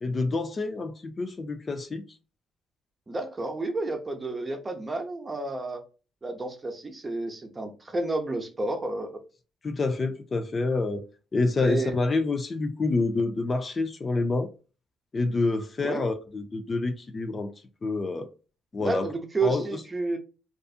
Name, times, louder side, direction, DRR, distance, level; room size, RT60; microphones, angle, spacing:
voice 1, 0.0-2.0 9.6-14.5 15.1-17.5 17.8-18.3 18.7-19.1 19.4-19.6, left 3 dB, 35° left, 0.4 m, -27 dB
voice 2, 3.1-5.8 6.2-9.2 11.6-11.9 15.8-16.0 18.8-20.2, right 2 dB, 25° right, 0.7 m, -31 dB
2.5 x 2.4 x 2.4 m
cardioid pair, 90°, 0 cm